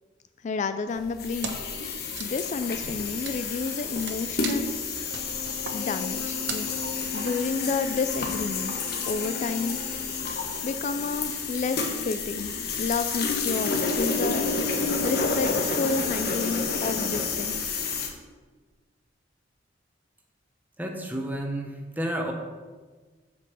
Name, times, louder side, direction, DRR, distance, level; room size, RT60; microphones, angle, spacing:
voice 1, 0.4-1.6 1.9-5.1 5.7-6.7 7.1-8.7 9.1-9.8 10.6-17.7, left 4 dB, 40° left, 10 dB, 0.3 m, -31 dB
sound 1, 1.2-18.1, left 4 dB, 55° left, 1.3 m, -29 dB
Wood, 1.4-1.8 2.0-7.6, right 5 dB, 70° right, 1.0 m, -39 dB
voice 2, 20.8-22.3, right 1 dB, 10° right, 2 dB, 1.1 m, -31 dB
8.7 x 5.3 x 6.8 m, 1.4 s
head